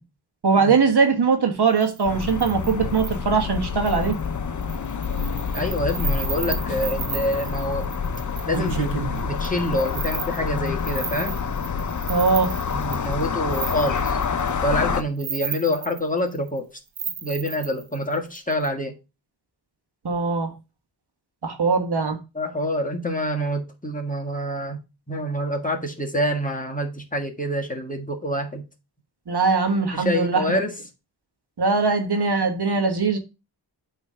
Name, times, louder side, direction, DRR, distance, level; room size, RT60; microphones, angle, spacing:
voice 1, 0.4-4.2 12.1-12.5 20.0-20.5 21.4-22.2 29.3-30.6 31.6-33.2, right 4 dB, 60° right, 1.5 m, -21 dB
sound 1, 1.8-3.2 3.8-4.3 4.6-14.5 15.0-16.6 17.0-18.7, right 6 dB, 85° right, 1.1 m, -33 dB
sound 2, 2.0-15.0, left 6 dB, 40° left, 0.7 m, -27 dB
voice 2, 5.5-7.9 8.4-11.4 12.7-14.2 14.6-16.7 17.2-18.9 22.3-24.8 25.1-28.6 29.9-30.8, equal, 20° left, 1.6 m, -26 dB
8.3 x 3.3 x 5.5 m
cardioid pair, 55°, 44 cm